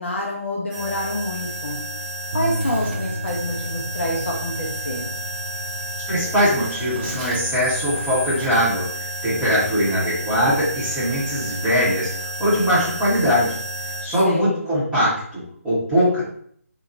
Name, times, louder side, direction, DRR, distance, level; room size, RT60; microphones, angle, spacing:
voice 1, 0.0-1.8 2.3-5.1 14.3-14.6, left 1 dB, 45° left, -1 dB, 0.6 m, -27 dB
sound 1, 0.7-14.0, right 1 dB, 30° right, 1.1 m, -31 dB
sound 2, 2.3-8.6, equal, 65° right, 0.5 m, -34 dB
voice 2, 6.1-8.8 9.2-12.1 12.4-13.6 14.0-16.2, equal, 5° right, -13 dB, 1.3 m, -21 dB
2.8 x 2.7 x 2.5 m, 0.62 s
figure-of-eight pair, 155°, 8 cm